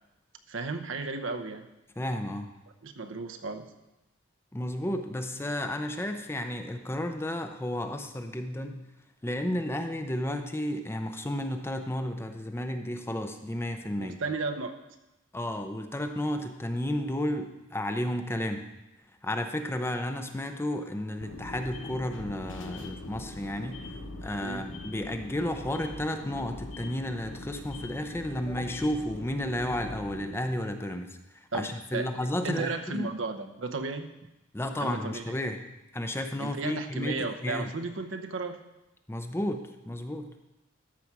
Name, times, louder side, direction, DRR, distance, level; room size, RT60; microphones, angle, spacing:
voice 1, 0.5-1.7 2.8-3.7 14.0-14.8 24.4-24.7 31.5-34.1 34.8-35.2 36.4-38.6, right 3 dB, 75° right, 6 dB, 0.8 m, -34 dB
voice 2, 2.0-2.5 4.5-8.8 9.2-14.2 15.3-18.7 19.2-23.8 24.2-33.1 34.5-35.6 35.9-37.7 39.1-40.3, left 1 dB, 10° left, 6 dB, 0.6 m, -32 dB
sound 1, 21.2-30.3, left 2 dB, 70° left, 0.9 m, -42 dB
13.5 x 4.8 x 6.0 m, 0.97 s
head